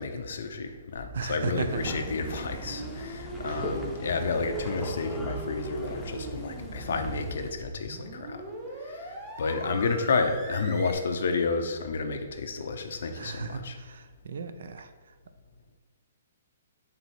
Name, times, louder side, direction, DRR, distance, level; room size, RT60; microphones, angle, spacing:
voice 1, 0.0-8.4 8.8-13.8, left 4 dB, 70° left, 6 dB, 0.5 m, -31 dB
sound 1, 0.9-10.9, right 2 dB, 15° right, 0.9 m, -41 dB
voice 2, 1.1-1.9 3.5-3.6 13.2-14.9, right 5 dB, 70° right, 10 dB, 0.3 m, -35 dB
sound 2, 1.5-7.5, equal, 5° left, 0.6 m, -39 dB
4.5 x 2.8 x 4.2 m, 1.5 s
hypercardioid pair, 135°, 0 cm